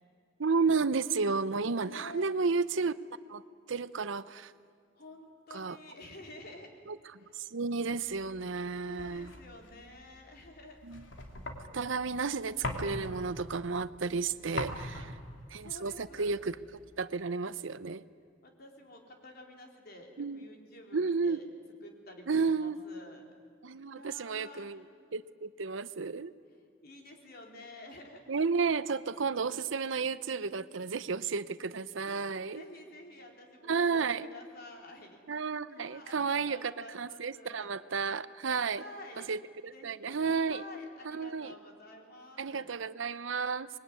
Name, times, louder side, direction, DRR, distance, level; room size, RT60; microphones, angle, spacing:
voice 1, 0.4-2.9 3.3-3.4 3.7-4.5 5.5-5.8 6.9-7.0 7.5-9.3 10.8-11.0 11.7-14.9 15.5-16.6 17.0-18.0 20.2-20.4 20.9-21.4 22.3-22.8 23.6-24.8 25.1-26.3 28.3-32.6 33.7-34.3 35.3-38.8 39.3-40.6 41.0-41.5 42.4-43.7, right 4 dB, 70° right, 15 dB, 0.7 m, -32 dB
voice 2, 1.8-2.3 5.0-6.7 7.2-7.3 8.8-10.8 14.9-16.3 18.4-21.4 21.8-23.3 23.9-24.7 26.8-28.2 32.0-34.0 34.3-35.2 35.7-37.7 38.7-39.3 39.7-42.7, left 1 dB, 50° left, 2 dB, 3.8 m, -50 dB
sound 1, 8.1-17.0, left 2 dB, 70° left, 2.9 m, -43 dB
25.5 x 21.5 x 9.6 m, 2.2 s
head